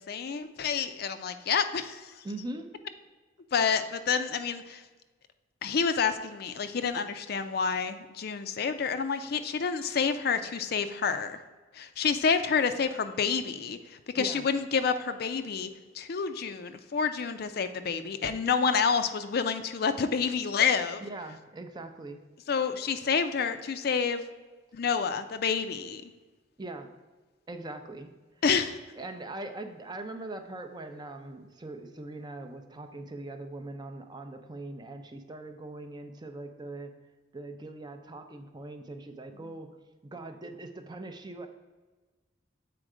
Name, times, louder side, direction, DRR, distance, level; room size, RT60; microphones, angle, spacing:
voice 1, 0.1-2.1 3.5-4.8 5.6-11.4 11.7-13.8 14.1-15.7 15.9-21.0 22.5-24.2 24.7-26.0 28.4-28.8, left 6 dB, 55° left, 10 dB, 0.4 m, -28 dB
voice 2, 2.2-2.7 14.2-14.5 21.0-22.2 26.6-27.0 27.5-28.1 29.0-36.9 37.3-39.7 40.1-41.5, right 2 dB, 20° right, 7 dB, 0.5 m, -41 dB
7.6 x 4.4 x 4.9 m, 1.3 s
head